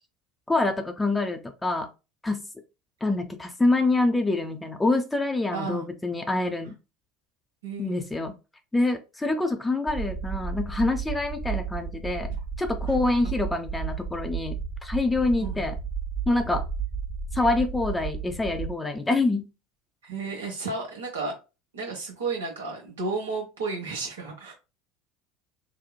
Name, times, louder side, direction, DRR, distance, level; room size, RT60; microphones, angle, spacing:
voice 1, 0.5-1.9 2.2-2.4 3.0-6.7 7.8-8.4 8.7-12.3 12.6-15.8 16.3-16.6 17.3-19.5, left 2 dB, 10° left, 6 dB, 0.4 m, -26 dB
voice 2, 5.5-5.9 7.6-7.9 12.3-12.4 12.9-13.0 15.4-15.6 20.0-21.3 21.7-24.5, right 4 dB, 75° right, -1 dB, 0.9 m, -32 dB
sound 1, 9.9-18.7, right 6 dB, 15° right, 1.0 m, -33 dB
2.9 x 2.0 x 2.3 m, 0.28 s
figure-of-eight pair, 70°, 0 cm